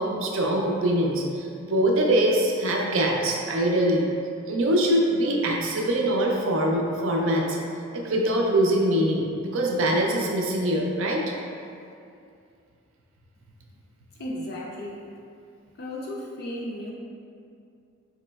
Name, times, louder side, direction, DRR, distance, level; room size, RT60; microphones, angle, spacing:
voice 1, 0.0-4.0 4.5-7.6 7.9-11.2, right 1 dB, 65° right, 0 dB, 0.5 m, -23 dB
voice 2, 14.2-15.0 15.8-16.9, left 1 dB, 50° left, -3 dB, 0.4 m, -34 dB
4.2 x 2.9 x 2.2 m, 2.4 s
head